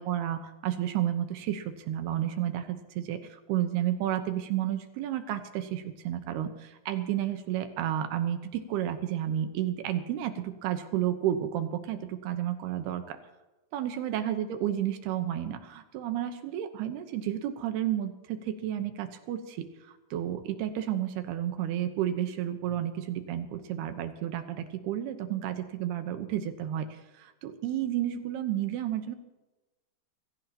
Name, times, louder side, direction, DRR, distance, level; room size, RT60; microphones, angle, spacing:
voice 1, 0.0-13.2 13.7-29.2, right 11 dB, 75° right, 8 dB, 2.9 m, -31 dB
24.5 x 16.0 x 3.0 m, 1.1 s
omnidirectional pair, 4.9 m